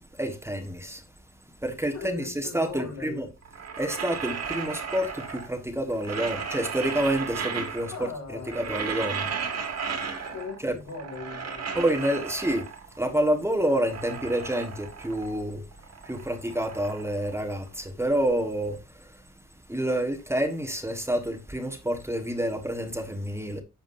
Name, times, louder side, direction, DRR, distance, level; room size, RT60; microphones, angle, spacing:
voice 1, 0.2-1.0 1.6-3.3 3.8-9.3 10.6-10.7 11.7-12.7 13.0-15.6 16.0-19.2 19.7-23.6, right 1 dB, 10° right, 1.4 m, -28 dB
voice 2, 1.9-3.2 7.9-8.7 10.2-11.8, left 5 dB, 80° left, 5.8 m, -39 dB
sound 1, 3.4-5.6 5.9-8.1 8.4-10.6 10.9-13.0 13.4-15.4 15.7-17.9, right 6 dB, 60° right, 2.3 m, -35 dB
11.0 x 7.4 x 2.6 m
wide cardioid pair, 155°, 29 cm